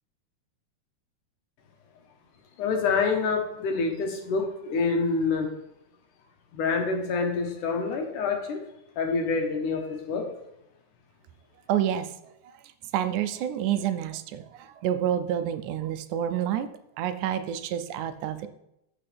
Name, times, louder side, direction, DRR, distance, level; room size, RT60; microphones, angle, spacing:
voice 1, 2.6-5.5 6.5-8.6 9.0-10.3, left 4 dB, 85° left, 2 dB, 2.9 m, -27 dB
voice 2, 11.7-12.1 12.9-14.5 14.8-16.7 17.0-18.5, right 10 dB, 85° right, 10 dB, 2.1 m, -28 dB
14.0 x 6.2 x 3.4 m, 0.82 s
omnidirectional pair, 3.5 m